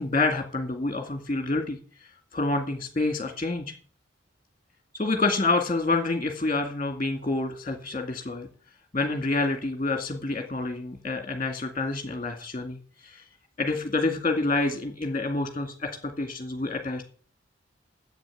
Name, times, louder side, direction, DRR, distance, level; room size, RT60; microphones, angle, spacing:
voice 1, 0.0-3.7 4.9-8.5 8.9-13.2 13.6-17.1, left 3 dB, 30° left, 4 dB, 2.1 m, -28 dB
11.0 x 8.2 x 8.3 m, 0.42 s
head